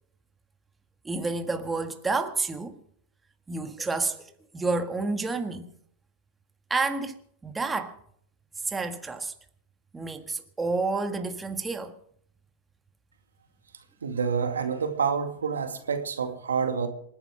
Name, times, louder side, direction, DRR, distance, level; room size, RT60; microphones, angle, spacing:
voice 1, 1.1-2.8 3.5-5.7 6.7-7.2 7.4-8.0 8.7-9.3 9.9-12.0, right 3 dB, 15° right, 1.7 m, -29 dB
voice 2, 14.0-16.9, right 6 dB, 85° right, 2.1 m, -28 dB
27.0 x 10.0 x 4.9 m
hypercardioid pair, 105°, 0 cm